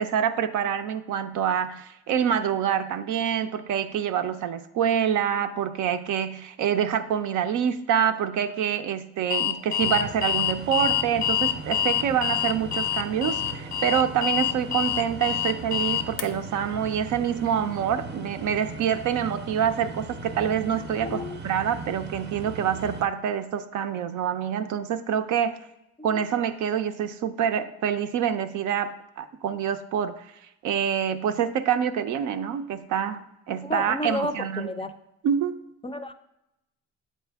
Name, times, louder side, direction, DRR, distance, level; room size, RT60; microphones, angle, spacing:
voice 1, 0.0-25.6 26.0-30.2 30.6-34.7 35.2-35.5, right 8 dB, 80° right, 9 dB, 0.5 m, -26 dB
Alarm, 9.3-16.2, left 10 dB, 80° left, 0.6 m, -26 dB
sound 1, 9.8-23.1, right 3 dB, 35° right, 0.6 m, -38 dB
voice 2, 21.0-21.4 26.0-26.2 33.6-34.9 35.8-36.1, left 2 dB, 20° left, 9 dB, 0.4 m, -32 dB
7.3 x 4.1 x 3.4 m, 0.86 s
cardioid pair, 90°, 30 cm